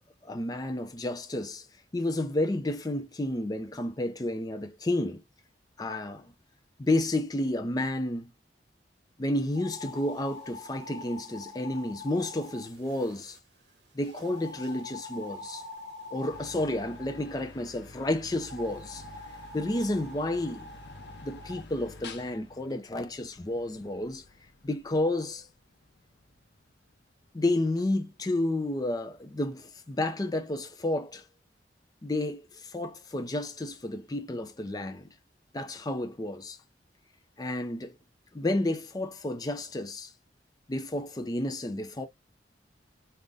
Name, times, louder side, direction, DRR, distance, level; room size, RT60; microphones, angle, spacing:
voice 1, 0.2-1.7 1.9-5.2 5.8-6.3 6.8-8.3 9.2-13.4 13.9-15.6 16.1-19.0 19.5-20.7 21.2-24.2 24.6-25.5 27.3-31.2 32.0-35.1 35.5-36.6 37.4-37.9 38.3-40.1 40.7-42.1, left 1 dB, 20° left, 0.5 m, -31 dB
sound 1, 9.5-13.4 14.0-17.3 18.4-21.6, left 2 dB, 75° right, 1.1 m, -45 dB
sound 2, 16.3-28.6, left 3 dB, 70° left, 0.6 m, -50 dB
3.9 x 2.1 x 3.5 m
head